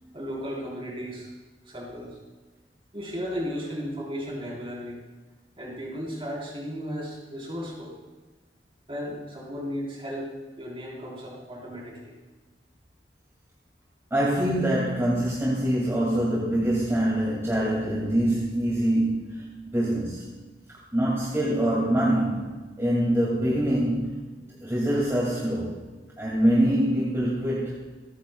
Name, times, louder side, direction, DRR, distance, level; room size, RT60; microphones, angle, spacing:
voice 1, 0.1-1.3 1.7-2.2 2.9-5.0 5.6-8.0 8.9-10.3 10.6-12.1, equal, 30° right, -3 dB, 4.2 m, -35 dB
voice 2, 14.1-20.3 20.7-25.8 26.2-27.8, right 1 dB, 15° right, -6 dB, 2.3 m, -25 dB
27.0 x 10.5 x 2.3 m, 1.3 s
head